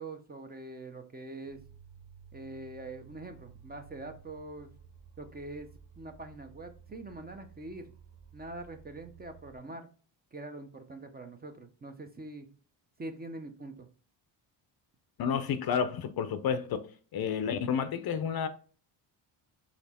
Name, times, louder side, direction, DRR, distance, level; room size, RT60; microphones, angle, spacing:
voice 1, 0.0-1.6 2.3-4.7 5.2-5.7 6.0-7.9 8.3-9.9 10.3-12.5 13.0-13.9, right 2 dB, 20° right, 0.6 m, -44 dB
sound 1, 1.5-9.6, right 7 dB, 65° right, 1.0 m, -54 dB
voice 2, 15.2-16.8 17.1-18.5, left 7 dB, 50° left, 0.6 m, -30 dB
4.2 x 3.0 x 4.2 m
cardioid pair, 105°, 45 cm